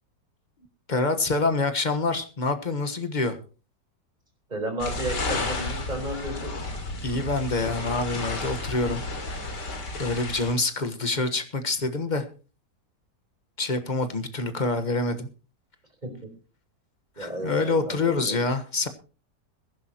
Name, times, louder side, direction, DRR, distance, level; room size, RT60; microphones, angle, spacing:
voice 1, 0.9-3.4 7.0-9.0 9.3-9.6 10.0-12.2 13.6-15.3 17.2-18.9, left 3 dB, 30° left, 9 dB, 1.3 m, -26 dB
voice 2, 4.5-6.6 16.0-16.3 17.2-18.4, right 1 dB, 25° right, 3 dB, 4.5 m, -33 dB
sound 1, 4.8-10.5, left 2 dB, 75° left, 3.4 m, -32 dB
22.0 x 10.5 x 3.0 m, 0.35 s
omnidirectional pair, 1.9 m